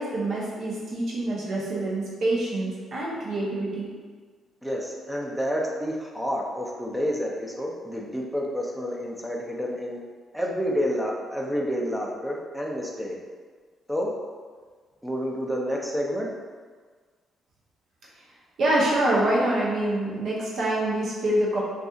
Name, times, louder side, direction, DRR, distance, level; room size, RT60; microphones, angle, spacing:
voice 1, 0.0-3.9 18.6-21.6, right 1 dB, 60° right, -5 dB, 0.7 m, -25 dB
voice 2, 4.6-10.0 10.3-13.2 13.9-14.1 15.0-16.3, equal, ahead, -2 dB, 0.4 m, -29 dB
2.6 x 2.4 x 2.4 m, 1.5 s
cardioid pair, 90°, 0 cm